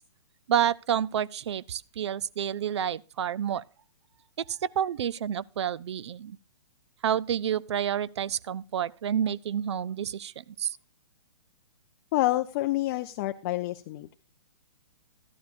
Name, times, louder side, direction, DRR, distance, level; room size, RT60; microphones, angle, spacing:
voice 1, 0.5-3.6 4.4-6.4 7.0-10.8, right 9 dB, 70° right, 0.4 m, -29 dB
voice 2, 12.1-14.1, left 17 dB, 40° left, 0.4 m, -28 dB
13.0 x 11.5 x 2.5 m
hypercardioid pair, 130°, 15 cm